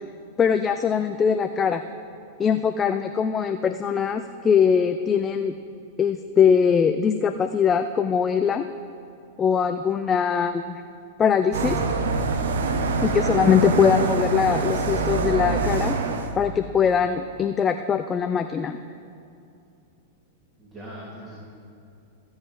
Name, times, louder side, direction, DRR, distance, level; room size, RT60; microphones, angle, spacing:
voice 1, 0.4-1.8 2.4-5.5 6.0-8.7 9.4-10.8 11.2-11.8 13.0-16.0 16.4-18.8, left 7 dB, 25° left, 8 dB, 0.4 m, -21 dB
sound 1, 11.5-16.3, right 4 dB, 75° right, 0.9 m, -25 dB
voice 2, 20.6-21.3, equal, 25° right, -7 dB, 3.1 m, -41 dB
15.0 x 7.3 x 4.8 m, 2.5 s
hypercardioid pair, 110°, 0 cm